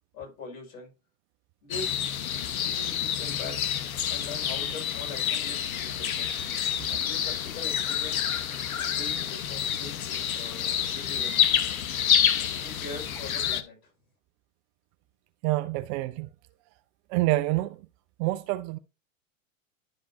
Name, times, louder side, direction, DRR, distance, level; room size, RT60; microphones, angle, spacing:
voice 1, 0.1-0.9 1.6-1.9 2.6-3.6 4.1-6.4 6.9-8.2 8.9-11.4 12.6-13.8, left 3 dB, 50° left, 5.3 m, -42 dB
sound 1, 1.7-13.6, left 9 dB, 85° left, 1.0 m, -28 dB
voice 2, 15.4-16.3 17.1-17.8 18.2-18.8, right 18 dB, 35° right, 0.4 m, -27 dB
11.5 x 5.3 x 2.7 m
hypercardioid pair, 110°, 41 cm